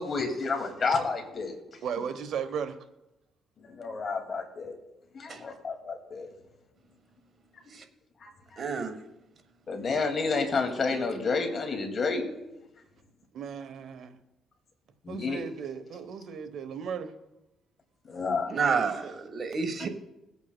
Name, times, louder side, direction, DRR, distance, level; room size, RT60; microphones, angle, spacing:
voice 1, 0.0-1.6 3.6-4.8 5.1-6.3 8.2-8.6 9.7-12.4 15.0-15.4 18.1-18.6, left 4 dB, 45° left, 2.1 m, -30 dB
voice 2, 1.8-2.8 13.3-14.2 15.1-17.1 19.8-19.9, right 7 dB, 70° right, 0.9 m, -36 dB
voice 3, 8.6-9.0 18.5-19.9, right 5 dB, 45° right, 1.3 m, -29 dB
22.5 x 8.3 x 2.2 m
cardioid pair, 90°, 0 cm